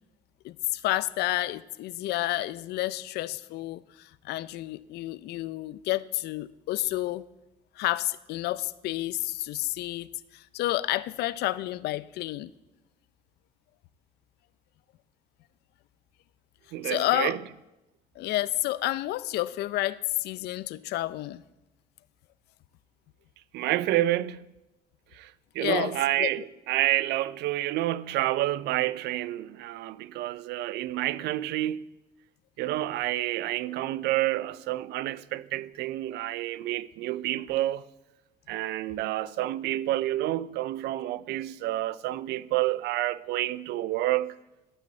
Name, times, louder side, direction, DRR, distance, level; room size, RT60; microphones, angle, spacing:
voice 1, 0.4-7.2 7.8-10.1 10.3-12.5 16.8-17.3 18.2-21.4 25.6-26.3, left 16 dB, 75° left, 0.5 m, -30 dB
voice 2, 16.7-17.4 23.5-24.5 25.1-31.9 32.6-37.8 38.5-44.4, right 15 dB, 80° right, 0.4 m, -29 dB
12.0 x 5.7 x 7.9 m
cardioid pair, 110°, 17 cm